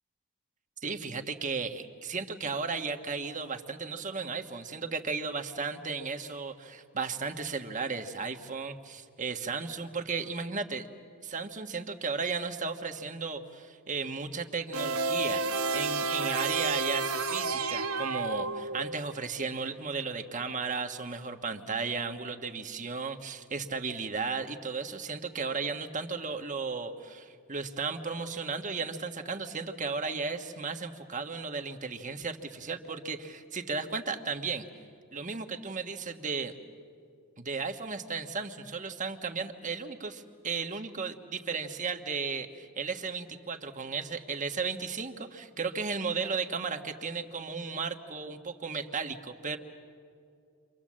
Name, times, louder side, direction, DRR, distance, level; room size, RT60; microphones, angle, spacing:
voice 1, 0.8-10.9 11.2-15.5 15.7-34.7 35.1-36.5 37.4-49.6, right 4 dB, 35° right, 6 dB, 1.4 m, -35 dB
sound 1, 14.7-19.1, right 4 dB, 70° right, 1.1 m, -31 dB
30.0 x 25.5 x 7.5 m, 2.4 s
head